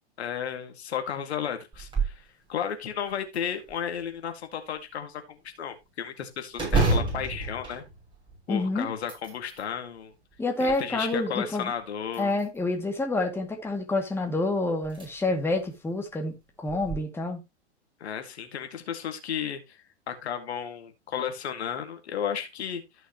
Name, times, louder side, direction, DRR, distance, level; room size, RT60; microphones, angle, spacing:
voice 1, 0.2-7.8 8.5-10.1 10.6-12.3 18.0-22.8, left 8 dB, 65° left, 2.1 m, -33 dB
sound 1, 1.7-2.2 2.7-2.8 3.3-4.1 6.5-8.5 8.9-9.7 10.3-11.2 12.1-12.7 14.2-14.3 14.8-15.1 15.5-15.6 16.7-17.0, right 3 dB, 15° right, 6.6 m, -29 dB
voice 2, 8.5-8.9 10.4-11.7 12.2-17.4, left 2 dB, 5° left, 2.2 m, -28 dB
14.5 x 6.2 x 3.0 m
hypercardioid pair, 115°, 34 cm